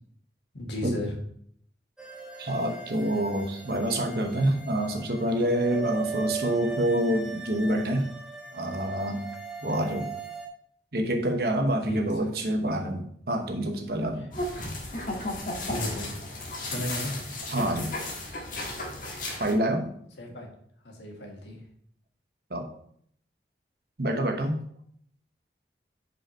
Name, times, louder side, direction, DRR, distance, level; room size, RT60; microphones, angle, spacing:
voice 1, 0.5-1.1 11.9-12.3 14.1-14.3 15.7-16.1 16.6-17.3 20.2-20.5 20.8-21.6, left 1 dB, 80° left, 1 dB, 1.6 m, -35 dB
sound 1, 2.0-10.5, right 5 dB, 5° right, 0.6 m, -39 dB
voice 2, 2.4-8.1 8.5-9.2 9.6-10.1 10.9-14.3 17.5-18.0 19.4-19.9 22.5-22.7 24.0-24.6, right 1 dB, 60° right, 4 dB, 1.0 m, -27 dB
sound 2, 14.3-19.5, left 2 dB, 50° left, 1.5 m, -34 dB
5.3 x 4.8 x 4.4 m, 0.63 s
head